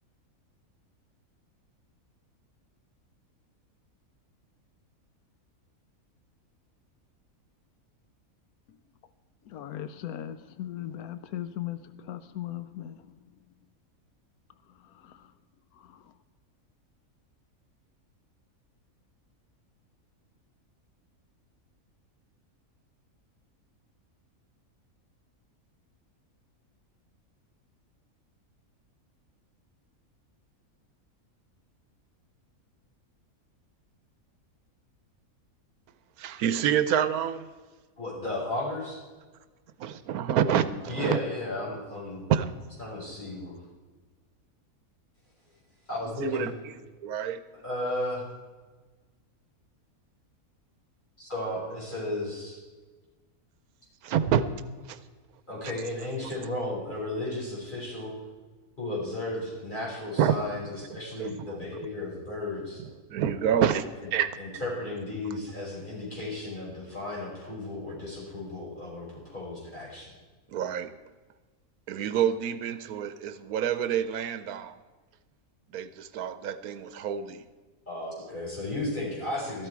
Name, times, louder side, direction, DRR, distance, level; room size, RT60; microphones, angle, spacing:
voice 1, 9.5-13.0, left 12 dB, 85° left, 1.1 m, -37 dB
voice 2, 36.2-37.5 39.8-41.2 42.3-42.5 46.2-46.5 47.0-47.4 54.0-54.4 54.9-55.0 60.2-60.3 61.2-61.6 63.1-63.8 64.1-64.3 70.5-70.9 71.9-74.8 75.7-77.4, right 9 dB, 85° right, 1.2 m, -27 dB
voice 3, 38.0-39.0 40.9-42.2 42.8-43.5 45.9-46.5 47.6-48.2 51.2-52.6 55.5-58.1 58.8-62.8 64.4-70.1 77.9-79.7, left 2 dB, 30° left, 5.3 m, -34 dB
13.5 x 12.5 x 4.7 m
omnidirectional pair, 1.5 m